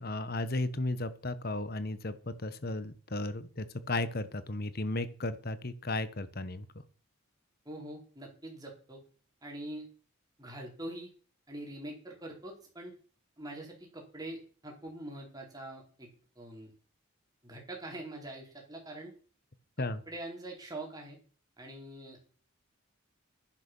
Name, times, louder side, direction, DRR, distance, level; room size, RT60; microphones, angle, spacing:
voice 1, 0.0-6.7 19.8-20.0, left 2 dB, 45° left, 14 dB, 1.2 m, -34 dB
voice 2, 7.6-9.0 9.4-9.9 10.4-11.1 11.5-12.9 13.4-16.1 16.3-16.7 17.4-19.1 20.1-21.2 21.6-22.3, right 1 dB, 15° right, 0 dB, 4.6 m, -44 dB
11.0 x 10.5 x 6.2 m, 0.42 s
head